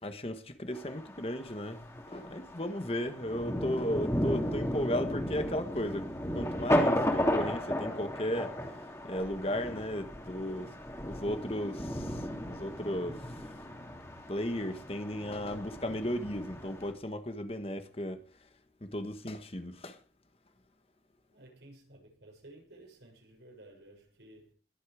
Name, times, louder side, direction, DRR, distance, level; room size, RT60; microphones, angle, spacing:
voice 1, 0.0-8.6 9.0-10.8 11.0-13.4 14.3-18.2 18.8-20.0, equal, 35° left, 1.4 m, -35 dB
Thunder, 0.7-16.9, equal, 15° left, 3.0 m, -35 dB
voice 2, 21.3-24.5, right 1 dB, 85° right, 6.5 m, -54 dB
21.5 x 8.4 x 5.0 m
head